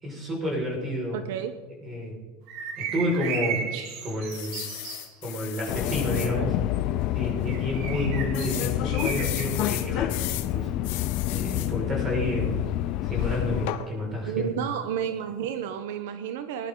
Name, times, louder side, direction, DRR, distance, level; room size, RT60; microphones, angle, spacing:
voice 1, 0.0-1.2 1.8-2.2 2.8-3.7 4.0-4.6 5.2-6.6 7.1-10.7 11.3-12.6 13.0-14.5, equal, 25° right, 0 dB, 5.3 m, -30 dB
voice 2, 1.1-1.6 14.3-16.7, right 9 dB, 80° right, 10 dB, 0.8 m, -31 dB
sound 1, 2.5-5.1 7.5-9.5, right 6 dB, 60° right, 2.6 m, -34 dB
sound 2, 4.3-6.3 6.9-7.0 7.2-7.3 8.3-10.5 10.8-11.7 13.7-13.9, left 16 dB, 65° left, 1.0 m, -36 dB
Subway metro underground, 5.7-13.7, left 14 dB, 50° left, 0.5 m, -28 dB
19.5 x 11.0 x 3.8 m, 1.3 s
supercardioid pair, 140°, 0 cm